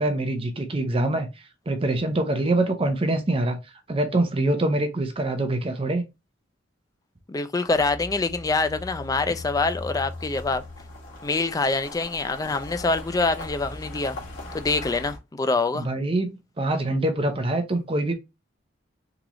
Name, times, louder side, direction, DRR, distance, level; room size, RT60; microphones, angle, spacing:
voice 1, 0.0-3.6 3.9-6.0 15.7-18.1, right 2 dB, 30° right, 0.6 m, -25 dB
voice 2, 7.3-10.6 11.2-14.2 14.5-15.9, left 3 dB, 20° left, 0.3 m, -25 dB
sound 1, 7.7-15.2, left 1 dB, 85° left, 1.8 m, -39 dB
3.8 x 3.0 x 2.9 m
head